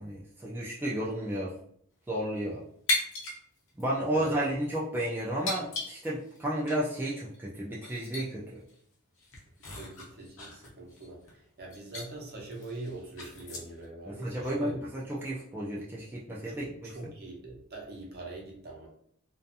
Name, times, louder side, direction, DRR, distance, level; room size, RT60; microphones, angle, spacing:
voice 1, 0.0-1.5 2.1-2.6 3.8-8.6 14.1-17.1, right 1 dB, 10° right, -6 dB, 0.3 m, -32 dB
sound 1, 2.9-3.4 3.7-3.8 4.6-4.8 5.4-6.4 6.7-6.8 7.3-7.4 7.8-8.3 8.7-8.8 9.2-11.4 11.7-12.1 12.5-13.8, left 2 dB, 60° left, 0.7 m, -35 dB
voice 2, 9.8-14.8 16.6-18.9, right 2 dB, 45° right, -1 dB, 0.7 m, -43 dB
2.4 x 2.3 x 2.6 m, 0.65 s
head